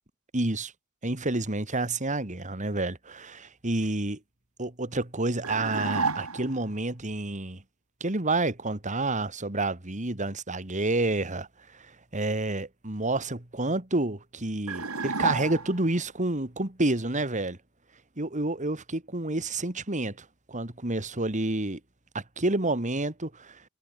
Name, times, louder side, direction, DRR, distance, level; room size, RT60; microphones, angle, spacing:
voice 1, 0.3-0.7 1.0-4.2 4.6-7.6 8.0-17.6 18.2-21.8 22.1-23.6, right 2 dB, 35° right, 2.6 m, -29 dB
sound 1, 5.4-6.6 14.7-16.0, right 4 dB, 85° right, 3.7 m, -30 dB
head